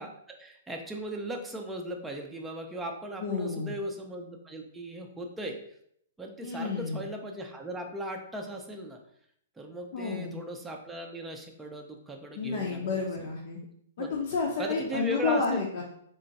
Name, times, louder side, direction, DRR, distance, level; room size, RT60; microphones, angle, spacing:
voice 1, 0.0-5.6 6.2-9.0 9.6-13.1 14.0-14.1 14.6-15.7, right 1 dB, 5° right, 2 dB, 0.5 m, -38 dB
voice 2, 3.2-3.8 6.4-7.0 9.9-10.4 12.3-13.6 14.0-15.8, left 4 dB, 55° left, -2 dB, 0.8 m, -30 dB
3.9 x 2.2 x 3.9 m, 0.69 s
hypercardioid pair, 145°, 0 cm